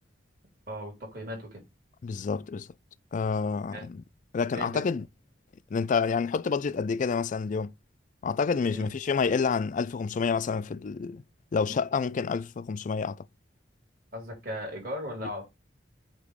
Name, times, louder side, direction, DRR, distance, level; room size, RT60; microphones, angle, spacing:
voice 1, 0.7-1.6 3.7-3.9 4.5-4.9 8.6-8.9 14.1-15.4, equal, 55° right, 3.6 m, -37 dB
voice 2, 2.0-2.7 3.1-4.0 4.3-5.0 5.7-7.7 8.2-11.2 11.5-13.3, left 5 dB, 45° left, 0.4 m, -28 dB
8.2 x 3.0 x 5.1 m
head